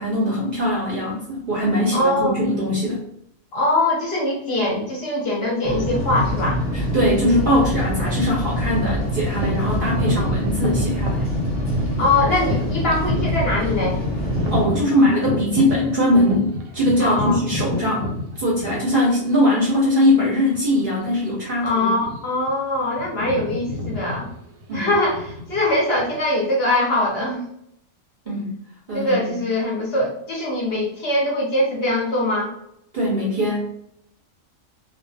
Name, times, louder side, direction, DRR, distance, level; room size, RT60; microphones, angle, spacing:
voice 1, 0.0-3.0 6.7-11.3 14.5-18.1 18.4-21.9 24.7-24.9 28.3-28.5 28.9-29.4 32.9-33.7, left 1 dB, 55° right, -4 dB, 0.6 m, -21 dB
voice 2, 1.9-2.4 3.5-6.6 12.0-14.0 17.0-17.4 21.6-22.0 22.2-24.3 24.7-27.4 28.9-32.5, left 1 dB, 60° left, -3 dB, 0.7 m, -22 dB
sound 1, 5.6-14.7, equal, 25° left, 0.8 m, -25 dB
sound 2, 9.3-19.1 19.8-19.9 20.5-20.8 21.0-21.3 21.9-22.5 22.7-26.2, left 1 dB, 85° right, 1.0 m, -28 dB
2.3 x 2.2 x 2.5 m, 0.75 s
omnidirectional pair, 1.4 m